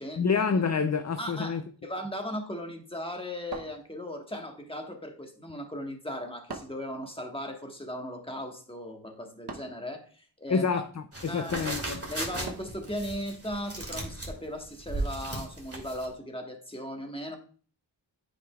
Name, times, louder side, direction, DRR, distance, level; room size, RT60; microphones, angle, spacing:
voice 1, 0.2-1.6 10.5-12.0, left 5 dB, 35° left, 0.5 m, -28 dB
voice 2, 1.2-10.8 11.3-11.7 12.1-17.4, equal, 10° left, 1.3 m, -37 dB
sound 1, 3.5-4.4 6.5-6.9 9.5-9.9 12.5-12.9, right 3 dB, 55° right, 0.9 m, -42 dB
sound 2, 11.1-16.1, right 1 dB, 30° right, 2.1 m, -36 dB
9.5 x 5.1 x 2.3 m
wide cardioid pair, 55°, 46 cm